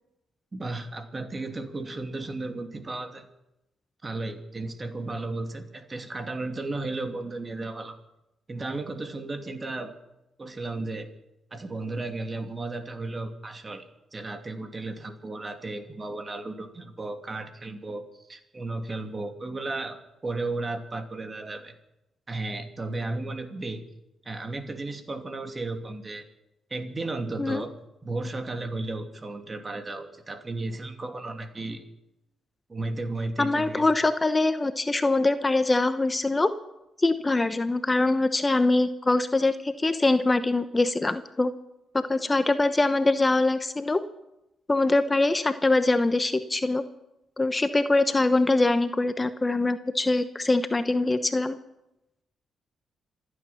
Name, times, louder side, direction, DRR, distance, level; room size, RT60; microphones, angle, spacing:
voice 1, 0.5-3.3 4.0-8.0 8.5-9.9 10.4-11.1 11.5-21.7 22.3-23.8 24.2-26.3 26.7-27.7 28.0-31.8 32.7-33.9, right 2 dB, 35° right, 6 dB, 2.6 m, -34 dB
voice 2, 33.4-36.5 37.0-41.5 41.9-44.0 44.7-46.8 47.4-51.6, left 2 dB, 25° left, 11 dB, 1.0 m, -23 dB
26.5 x 9.1 x 5.9 m, 0.88 s
hypercardioid pair, 45°, 0 cm